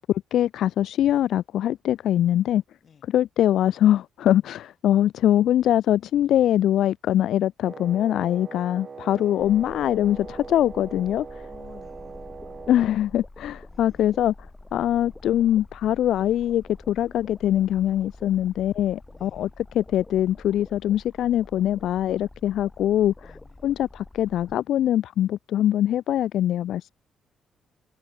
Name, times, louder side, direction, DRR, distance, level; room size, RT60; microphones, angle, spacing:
voice 1, 0.1-2.6 3.1-11.5 12.7-14.3 14.7-23.4 23.6-26.9, left 11 dB, 75° left, 0.7 m, -23 dB
Wind instrument woodwind instrument, 7.6-13.0, right 5 dB, 35° right, 7.3 m, -41 dB
sound 1, 9.4-24.6, left 2 dB, 15° left, 2.5 m, -46 dB
voice 2, 11.5-12.8 13.6-14.3 19.1-19.6 23.2-23.7, left 7 dB, 50° left, 6.2 m, -54 dB
cardioid pair, 90°, 0 cm